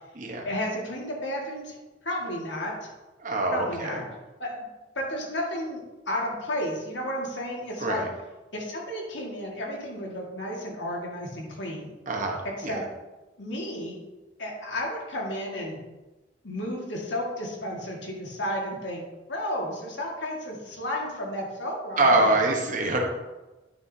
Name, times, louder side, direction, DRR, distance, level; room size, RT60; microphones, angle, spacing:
voice 1, 0.4-1.8 2.0-2.9 3.5-4.0 4.4-4.7 5.0-8.0 8.5-11.9 12.4-12.8 13.4-14.0 14.4-15.8 16.4-19.0 19.3-22.4, left 1 dB, 80° left, -1 dB, 1.8 m, -32 dB
voice 2, 3.2-4.0 7.8-8.1 12.1-12.8 22.0-23.0, right 2 dB, 45° right, 1 dB, 1.1 m, -24 dB
9.1 x 6.3 x 2.8 m, 1.1 s
head